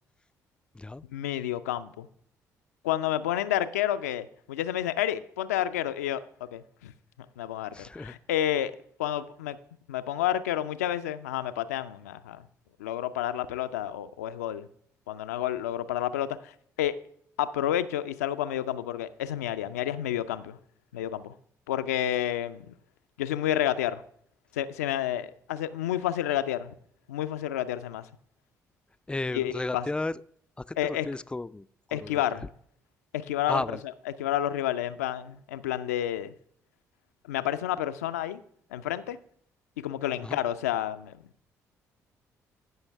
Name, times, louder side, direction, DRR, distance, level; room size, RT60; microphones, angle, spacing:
voice 1, 1.1-2.1 2.8-6.9 7.4-8.7 9.0-9.6 9.9-12.4 12.8-14.7 15.1-16.5 16.8-16.9 17.4-20.6 20.9-21.3 21.7-22.7 23.2-24.0 24.5-26.8 27.1-28.1 29.3-29.9 30.8-31.1 31.9-32.5 33.1-33.6 34.2-36.3 37.3-38.4 38.7-39.2 39.8-41.2, left 11 dB, 80° left, 12 dB, 0.4 m, -30 dB
voice 2, 7.7-8.1 29.1-30.2 30.7-32.2 33.5-33.8 40.2-40.4, left 2 dB, 10° left, 17 dB, 0.3 m, -33 dB
14.5 x 5.6 x 3.4 m, 0.65 s
figure-of-eight pair, 45°, 8 cm